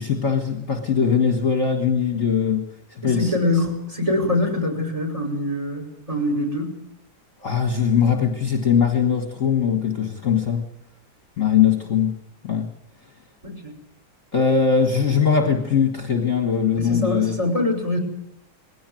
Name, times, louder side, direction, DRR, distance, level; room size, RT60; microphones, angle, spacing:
voice 1, 0.0-3.3 7.4-10.7 11.4-12.7 14.3-17.4, left 6 dB, 40° left, 4 dB, 1.8 m, -21 dB
voice 2, 3.0-6.8 13.4-13.7 16.8-18.0, left 2 dB, 15° right, 3 dB, 5.2 m, -24 dB
20.5 x 17.0 x 9.2 m, 0.82 s
omnidirectional pair, 2.2 m